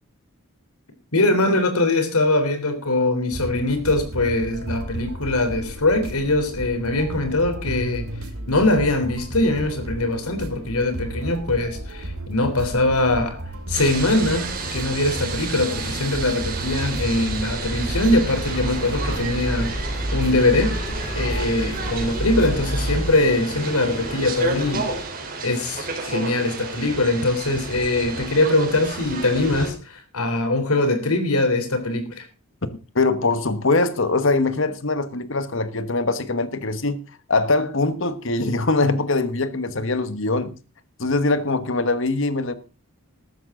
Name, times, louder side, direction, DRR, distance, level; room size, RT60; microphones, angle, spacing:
voice 1, 1.1-8.1 8.5-13.4 13.7-19.7 20.1-20.8 21.2-24.9 25.4-32.2, left 2 dB, 85° left, 3.6 m, -22 dB
sound 1, 3.3-23.1, right 1 dB, 80° right, 2.5 m, -32 dB
sound 2, 13.7-29.7, right 3 dB, 40° right, 3.6 m, -31 dB
sound 3, 18.4-25.1, left 1 dB, 30° left, 2.8 m, -36 dB
voice 2, 32.9-37.0 37.3-40.5 41.0-42.5, left 3 dB, 60° left, 1.2 m, -22 dB
14.0 x 13.0 x 3.7 m
head